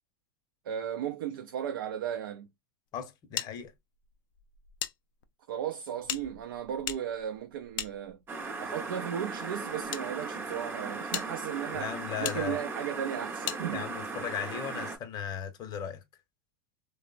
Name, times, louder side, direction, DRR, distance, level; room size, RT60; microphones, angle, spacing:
voice 1, 0.6-2.5 5.5-8.2 8.6-13.9, right 9 dB, 85° right, 0.4 m, -35 dB
voice 2, 2.9-3.7 11.7-12.6 13.7-16.0, left 8 dB, 35° left, 0.7 m, -37 dB
sound 1, 3.4-4.9 5.2-5.3 6.0-8.5 9.3-10.0 10.6-10.7 11.1-11.3 12.2-12.4 13.4-13.6, left 12 dB, 70° left, 0.4 m, -37 dB
sound 2, 8.3-15.0, right 3 dB, 20° right, 0.6 m, -37 dB
3.2 x 2.0 x 2.3 m
supercardioid pair, 125°, 11 cm